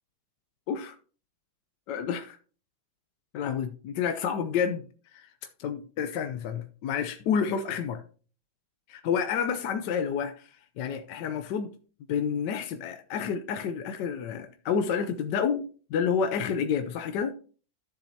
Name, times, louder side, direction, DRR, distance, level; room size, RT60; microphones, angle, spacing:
voice 1, 1.9-2.4 3.3-4.9 5.1-5.3 5.6-8.0 8.9-11.7 12.1-17.3, left 7 dB, 70° left, 1.2 m, -29 dB
13.0 x 7.2 x 2.8 m
omnidirectional pair, 2.2 m